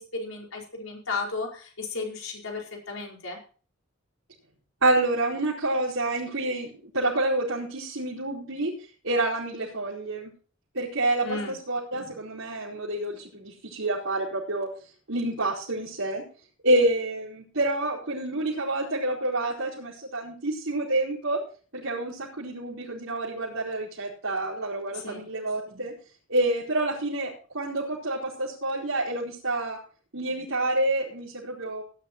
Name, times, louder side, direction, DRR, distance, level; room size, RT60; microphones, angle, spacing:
voice 1, 0.0-3.4 11.2-11.5 24.9-25.2, left 3 dB, 85° left, -1 dB, 5.0 m, -34 dB
voice 2, 4.8-8.7 9.0-10.3 10.7-14.7 15.1-16.2 16.6-21.4 21.7-25.9 26.3-29.8 30.1-31.8, right 2 dB, 85° right, -8 dB, 4.7 m, -28 dB
18.0 x 11.5 x 3.1 m, 0.39 s
head